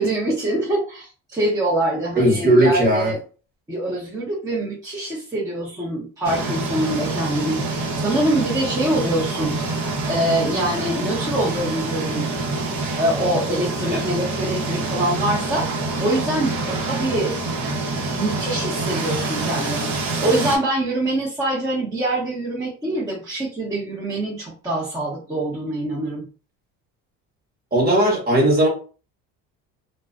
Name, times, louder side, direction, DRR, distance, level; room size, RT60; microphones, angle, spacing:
voice 1, 0.0-3.2 3.7-9.8 10.1-12.3 13.0-15.7 16.0-17.4 18.0-26.3, right 1 dB, 10° right, -6 dB, 0.8 m, -24 dB
voice 2, 2.2-3.1 13.9-14.0 27.7-28.7, right 1 dB, 30° right, -1 dB, 1.1 m, -17 dB
sound 1, 6.2-20.6, right 3 dB, 60° right, 0.9 m, -26 dB
2.3 x 2.2 x 2.4 m, 0.37 s
supercardioid pair, 100°, 33 cm